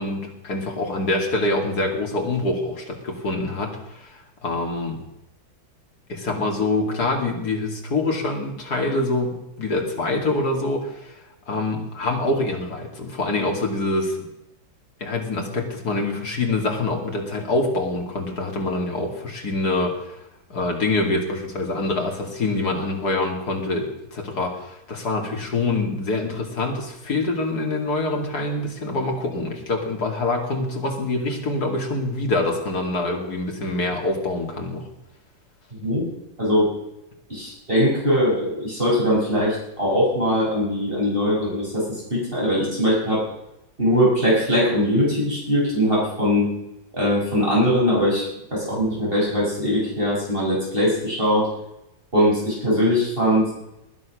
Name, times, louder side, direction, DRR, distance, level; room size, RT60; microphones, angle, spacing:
voice 1, 0.0-5.0 6.1-11.2 11.5-14.2 15.0-20.2 20.5-34.9, left 2 dB, 55° left, 2 dB, 3.1 m, -25 dB
voice 2, 37.3-43.2 43.8-46.5 46.9-48.2 48.5-51.5 52.1-53.5, equal, 25° right, -6 dB, 6.3 m, -21 dB
20.5 x 9.5 x 6.4 m, 0.88 s
omnidirectional pair, 2.1 m